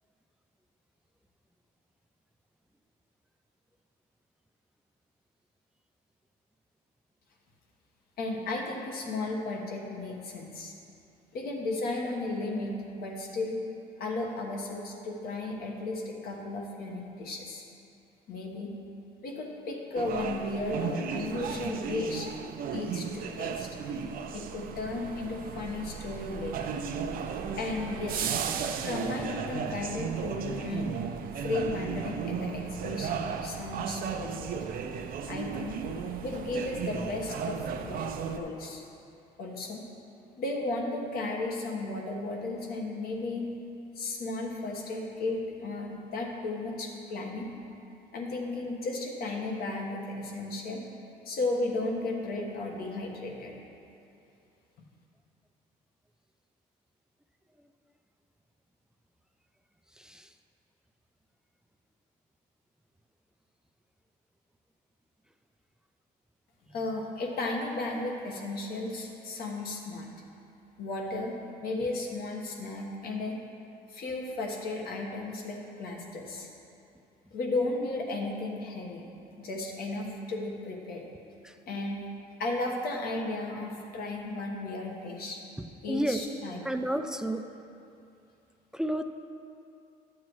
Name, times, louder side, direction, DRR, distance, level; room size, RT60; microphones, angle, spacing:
voice 1, 8.2-10.7 11.3-13.6 14.0-17.6 18.3-18.7 19.2-22.3 22.7-23.7 24.3-26.8 27.5-28.4 28.8-31.0 31.3-34.5 35.3-35.8 36.2-38.8 39.4-39.8 40.4-43.5 43.9-47.5 48.1-50.8 51.2-53.5 66.7-70.1 70.8-73.4 73.9-76.5 77.3-79.1 79.4-81.0 81.7-82.0 82.4-85.4 85.8-86.7, left 2 dB, 65° left, 0 dB, 1.3 m, -34 dB
sound 1, 20.0-38.4, right 6 dB, 60° right, 0.5 m, -35 dB
sound 2, 26.8-30.2, right 4 dB, 90° right, 1.1 m, -50 dB
voice 2, 60.0-60.3 81.4-81.5 85.6-86.2 86.6-87.5 88.7-89.0, right 1 dB, 5° right, 6 dB, 0.4 m, -31 dB
11.5 x 7.4 x 3.1 m, 2.7 s
cardioid pair, 110°, 17 cm